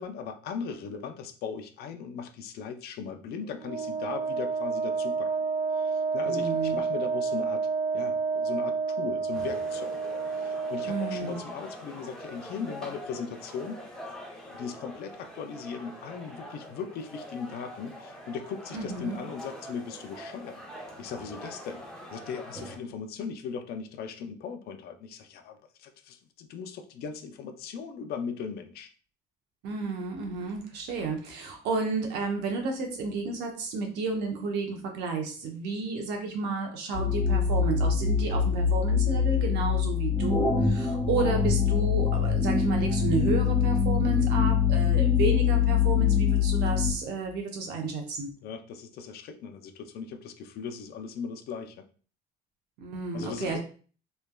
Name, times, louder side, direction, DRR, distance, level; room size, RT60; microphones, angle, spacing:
voice 1, 0.0-5.3 5.8-7.7 7.9-10.0 10.3-13.8 14.5-20.6 21.0-21.8 22.1-28.9 48.4-51.9 53.1-53.6, left 6 dB, 70° left, 7 dB, 0.4 m, -38 dB
Wind instrument woodwind instrument, 3.6-11.4, right 5 dB, 45° right, 0.4 m, -30 dB
voice 2, 6.2-6.8 10.8-11.4 18.7-19.2 29.6-48.3 52.8-53.6, right 4 dB, 80° right, 3 dB, 0.8 m, -32 dB
sound 1, 9.3-22.8, equal, 5° left, 0.7 m, -44 dB
sound 2, 36.9-46.9, left 7 dB, 30° left, 1.4 m, -24 dB
3.2 x 2.2 x 2.2 m, 0.40 s
cardioid pair, 110°, 17 cm